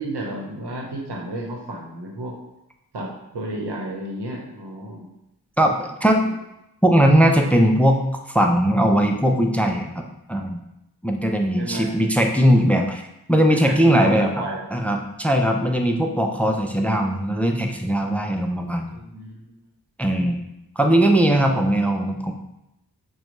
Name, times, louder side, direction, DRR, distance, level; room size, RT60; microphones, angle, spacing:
voice 1, 0.0-2.3 2.9-5.1 6.3-6.4 11.6-11.9 13.6-14.6 18.9-19.5 21.4-21.6, right 1 dB, 90° right, 0 dB, 0.9 m, -32 dB
voice 2, 5.6-6.2 6.8-8.0 8.3-10.6 11.0-13.0 13.3-14.3 14.7-18.9 20.0-20.4 20.8-22.3, equal, 5° left, 3 dB, 0.4 m, -19 dB
6.1 x 2.2 x 3.0 m, 0.87 s
cardioid pair, 50°, 39 cm